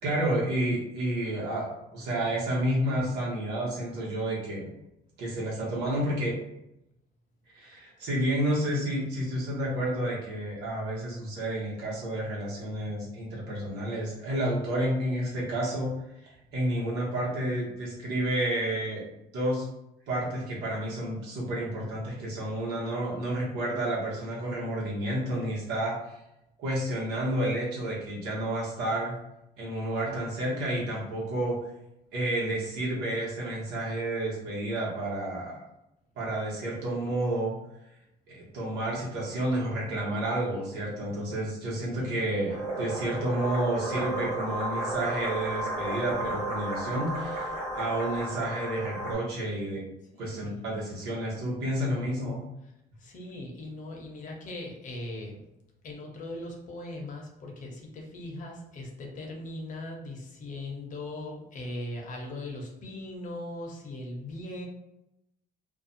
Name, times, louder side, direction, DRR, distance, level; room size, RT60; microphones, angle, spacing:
voice 1, 0.0-4.7 5.2-6.3 7.5-15.9 16.2-19.0 19.3-19.6 20.1-26.2 26.6-29.1 29.6-31.6 32.1-35.6 36.2-37.5 38.3-49.8 50.2-52.4, right 1 dB, 90° right, -4 dB, 1.1 m, -30 dB
sound 1, 42.5-49.1, right 1 dB, 55° right, 1.0 m, -33 dB
voice 2, 50.1-50.6 53.0-55.4 55.8-64.7, left 1 dB, 50° left, 0 dB, 0.8 m, -39 dB
2.5 x 2.2 x 2.6 m, 0.86 s
cardioid pair, 110°, 17 cm